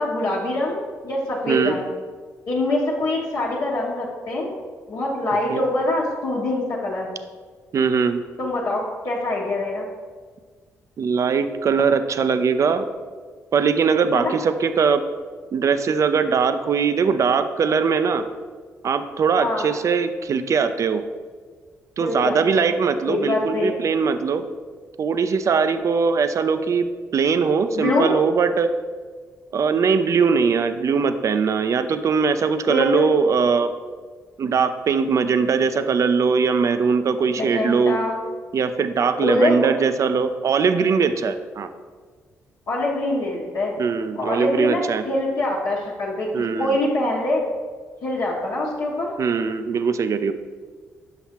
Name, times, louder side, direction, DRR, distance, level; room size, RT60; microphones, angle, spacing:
voice 1, 0.0-1.9 2.5-4.5 4.9-7.1 8.4-9.9 14.1-14.3 19.4-19.7 22.0-22.7 23.1-23.7 27.8-28.1 32.7-33.1 37.4-38.1 39.2-39.7 42.7-43.7 44.2-47.4 48.0-49.1, left 2 dB, 65° left, -7 dB, 1.0 m, -24 dB
voice 2, 7.7-8.2 11.0-12.8 13.5-15.0 15.5-18.2 18.8-21.0 22.0-24.4 25.0-26.9 27.1-28.7 29.5-33.7 34.4-38.0 38.5-41.7 43.8-45.0 46.3-46.7 49.2-50.3, right 5 dB, 55° right, 10 dB, 0.4 m, -21 dB
5.8 x 5.8 x 2.9 m, 1.5 s
supercardioid pair, 55°, 6 cm